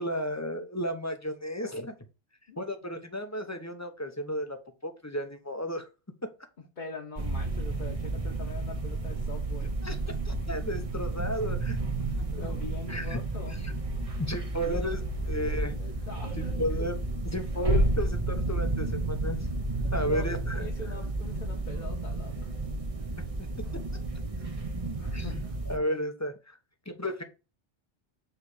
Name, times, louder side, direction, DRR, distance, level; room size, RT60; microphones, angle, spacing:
voice 1, 0.0-1.9 2.6-4.6 4.8-5.8 9.8-12.1 12.4-12.5 12.9-13.2 13.6-13.7 14.1-15.7 16.4-17.0 17.3-19.4 19.9-20.7 23.4-23.5 23.7-23.8 25.1-25.2 25.7-26.6 26.9-27.2, equal, 15° left, 6 dB, 0.7 m, -33 dB
voice 2, 6.8-9.7 12.0-13.6 15.7-16.5 16.8-16.9 19.8-20.3 20.6-22.5 25.0-25.4, left 3 dB, 45° left, 0 dB, 1.2 m, -43 dB
sound 1, 7.2-25.8, right 2 dB, 35° right, 0.9 m, -31 dB
7.2 x 3.3 x 4.8 m, 0.30 s
omnidirectional pair, 1.2 m